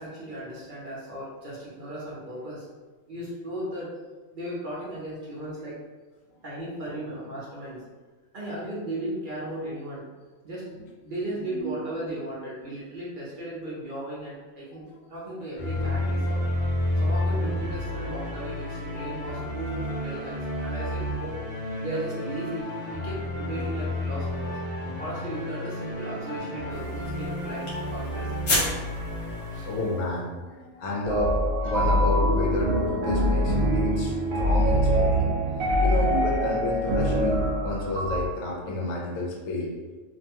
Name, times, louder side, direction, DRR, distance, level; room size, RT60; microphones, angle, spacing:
voice 1, 0.0-2.7 3.1-3.9 4.3-5.8 6.4-7.8 8.3-10.1 10.4-10.7 11.0-16.4 17.0-21.4 21.8-24.5 25.0-28.7 29.5-29.7, right 1 dB, 50° right, -7 dB, 0.6 m, -36 dB
voice 2, 11.4-11.7 12.1-12.2 14.7-14.8 29.6-35.3 35.8-39.7, left 1 dB, 80° left, -1 dB, 1.0 m, -30 dB
Sad Waiting Theme, 15.6-30.1, left 1 dB, 45° left, 0.6 m, -31 dB
sound 1, 26.7-30.2, left 1 dB, 60° left, 1.1 m, -32 dB
sound 2, 31.0-38.3, equal, 80° right, 1.0 m, -24 dB
2.6 x 2.2 x 2.8 m, 1.3 s
omnidirectional pair, 1.4 m